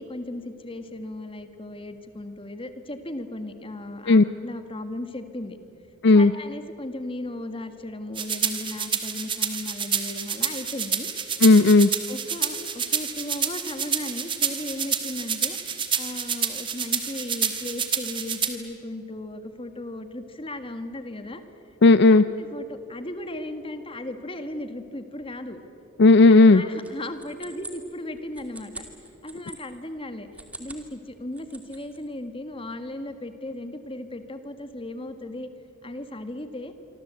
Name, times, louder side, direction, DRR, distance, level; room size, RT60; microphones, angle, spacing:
voice 1, 0.0-5.6 6.1-11.1 12.1-21.4 22.1-25.6 26.5-28.9 29.2-30.3 30.6-35.5 35.8-36.7, left 1 dB, 25° left, 8 dB, 1.7 m, -36 dB
sound 1, 8.2-18.5, right 7 dB, 25° right, 1.9 m, -28 dB
voice 2, 11.4-11.9 21.8-22.2 26.0-26.6, left 3 dB, 55° left, 13 dB, 0.5 m, -13 dB
sound 2, 26.8-29.6 30.2-30.9 31.2-32.0, right 2 dB, 5° right, 2.4 m, -43 dB
27.0 x 24.5 x 8.3 m, 3.0 s
head